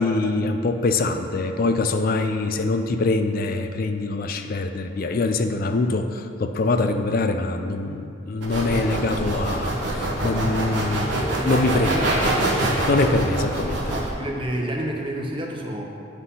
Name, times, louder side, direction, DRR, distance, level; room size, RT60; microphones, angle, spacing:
voice 1, 0.0-12.0 12.9-13.9, left 3 dB, 45° left, 7 dB, 0.4 m, -24 dB
sound 1, 8.4-14.1, right 1 dB, 60° right, 1.1 m, -25 dB
voice 2, 11.8-12.4 12.9-13.2 13.9-15.8, right 1 dB, 25° right, 0 dB, 0.7 m, -29 dB
8.1 x 3.9 x 5.5 m, 2.6 s
head